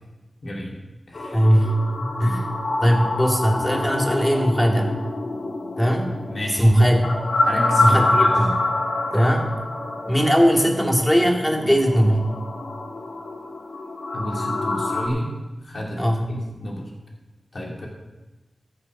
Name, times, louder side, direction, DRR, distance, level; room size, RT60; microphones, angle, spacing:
voice 1, 0.4-0.8 1.1-1.4 6.3-6.7 7.4-8.3 14.1-15.3 15.6-16.0 16.3-16.9 17.5-17.9, equal, 50° left, -2 dB, 2.7 m, -30 dB
sound 1, 1.1-15.1, left 2 dB, 80° left, 1.6 m, -26 dB
voice 2, 1.3-2.5 2.8-5.0 5.8-6.2 6.5-7.0 7.8-8.6 9.1-9.5 10.1-12.3 16.0-16.3, equal, 5° left, 1 dB, 2.1 m, -19 dB
14.0 x 6.9 x 5.4 m, 1.1 s
wide cardioid pair, 75°, 0 cm